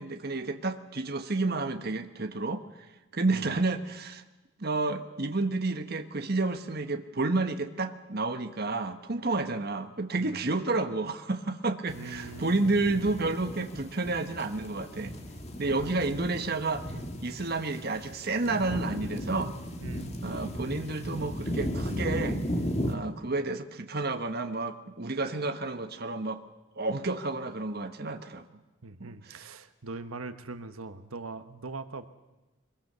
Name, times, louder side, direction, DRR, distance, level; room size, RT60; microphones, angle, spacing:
voice 1, 0.0-2.6 3.1-4.2 4.6-15.1 15.6-16.9 17.2-19.5 20.2-22.4 22.9-26.4 26.8-28.4 29.0-29.5, right 3 dB, 50° right, 8 dB, 1.2 m, -30 dB
sound 1, 11.9-22.9, equal, 30° left, 1.9 m, -36 dB
voice 2, 11.9-12.7 19.8-20.1 28.8-32.1, right 3 dB, 85° right, 10 dB, 1.2 m, -41 dB
23.0 x 22.0 x 6.8 m, 1.1 s
head